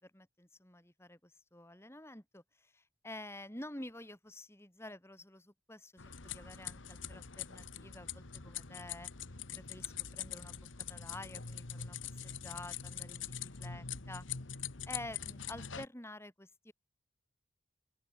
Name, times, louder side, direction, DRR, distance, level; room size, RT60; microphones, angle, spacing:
voice 1, 0.0-9.1 9.5-14.3 14.9-16.7, left 1 dB, 15° left, 5.0 m, -49 dB
sound 1, 6.0-15.9, left 8 dB, 75° left, 1.6 m, -44 dB
open air
head